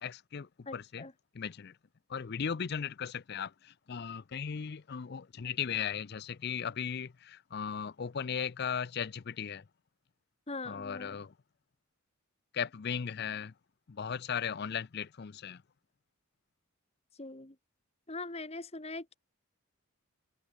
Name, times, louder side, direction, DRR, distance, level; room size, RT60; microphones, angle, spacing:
voice 1, 0.0-1.0 1.3-1.7 2.1-9.6 10.7-11.3 12.5-13.5 13.9-15.6, left 7 dB, 45° left, 0.5 m, -37 dB
voice 2, 0.6-1.1 10.5-11.2 17.2-17.5 18.1-19.1, left 3 dB, 30° left, 1.6 m, -42 dB
head